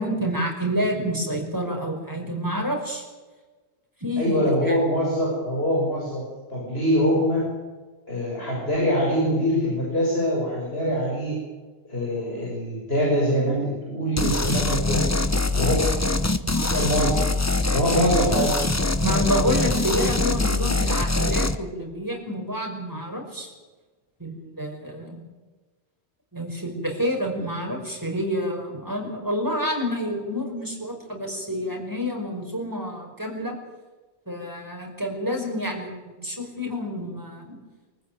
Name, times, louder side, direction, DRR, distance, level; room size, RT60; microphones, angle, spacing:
voice 1, 0.0-3.1 4.0-4.8 16.4-16.9 19.0-23.5 24.2-25.2 26.3-33.6 34.3-37.6, equal, 20° right, 1 dB, 5.4 m, -28 dB
voice 2, 4.2-6.2 6.5-7.5 8.1-11.4 11.9-15.1 15.5-15.8 16.7-17.2 17.7-18.5, equal, 70° left, -4 dB, 6.3 m, -23 dB
sound 1, 14.2-21.6, left 2 dB, 15° left, 0.9 m, -23 dB
25.0 x 14.5 x 9.4 m, 1.3 s
omnidirectional pair, 1.1 m